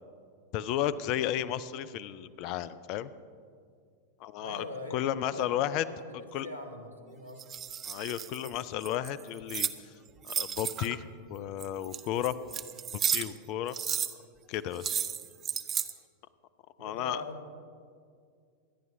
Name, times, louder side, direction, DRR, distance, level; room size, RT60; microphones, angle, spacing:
voice 1, 0.5-3.1 4.2-4.6 4.9-5.8 6.3-6.5 7.9-9.7 10.2-11.0 11.3-12.4 12.9-13.8 14.5-15.1 16.8-17.2, left 11 dB, 40° left, 16 dB, 0.4 m, -33 dB
voice 2, 4.4-7.4 16.8-17.7, left 1 dB, 85° right, 3 dB, 1.3 m, -43 dB
sound 1, 7.4-9.8 10.2-11.0 11.6-13.4 13.7-14.1 14.8-15.9, right 8 dB, 25° right, 0.5 m, -33 dB
25.0 x 10.5 x 2.6 m, 2.2 s
figure-of-eight pair, 90°, 0 cm